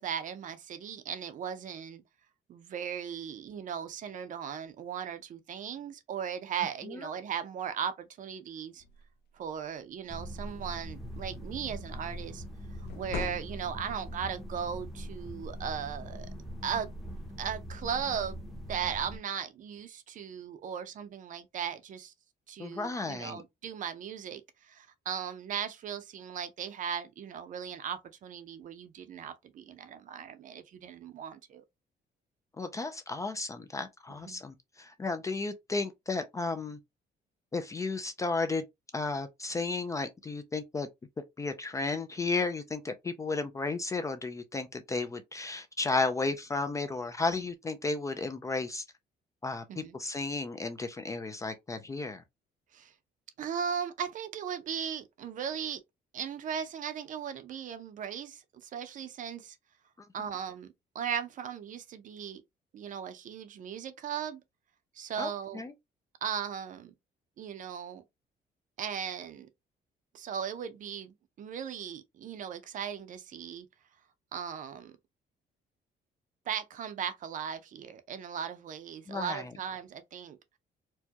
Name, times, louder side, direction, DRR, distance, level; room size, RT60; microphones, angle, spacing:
voice 1, 0.0-2.0 2.5-8.8 9.3-12.4 12.9-16.3 16.6-16.9 17.4-22.1 22.5-31.6 34.2-34.4 49.7-50.0 52.7-52.9 53.4-55.8 56.1-59.6 60.1-62.4 62.7-64.4 64.9-65.7 66.2-66.9 67.4-68.0 68.8-69.5 70.1-73.7 74.3-75.0 76.5-80.4, right 8 dB, 45° right, 0.6 m, -37 dB
sound 1, 8.8-9.1 9.5-9.7 10.0-11.1 12.7-14.0, left 6 dB, 65° left, 0.6 m, -41 dB
sound 2, 10.1-19.2, equal, ahead, 0.7 m, -42 dB
voice 2, 22.6-23.4 32.6-36.8 37.5-38.6 38.9-40.9 41.2-48.8 49.4-52.2 65.2-65.7 79.1-79.5, left 3 dB, 20° left, 0.3 m, -33 dB
4.5 x 2.2 x 2.8 m
cardioid pair, 170°, 18 cm